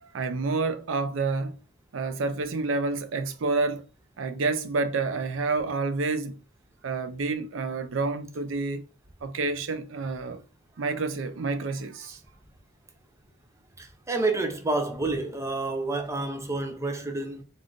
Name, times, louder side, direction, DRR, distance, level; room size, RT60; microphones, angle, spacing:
voice 1, 0.0-1.6 1.9-3.8 4.2-6.4 6.8-8.8 9.2-10.4 10.8-12.2, right 3 dB, 80° right, 0.5 m, -29 dB
voice 2, 13.8-17.4, right 2 dB, 15° right, 0.6 m, -29 dB
3.6 x 2.5 x 3.7 m
head